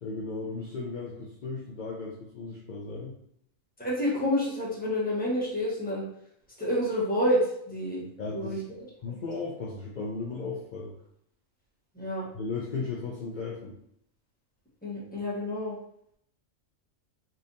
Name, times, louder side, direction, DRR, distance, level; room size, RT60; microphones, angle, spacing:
voice 1, 0.0-3.1 8.2-8.6 9.0-10.9 12.3-13.7, left 4 dB, 55° left, -3 dB, 0.5 m, -35 dB
voice 2, 3.8-6.0 6.6-7.4 7.7-8.0 8.3-8.6 11.9-12.2 14.8-15.8, equal, 5° left, -6 dB, 1.1 m, -28 dB
3.7 x 3.3 x 2.7 m, 0.71 s
omnidirectional pair, 1.4 m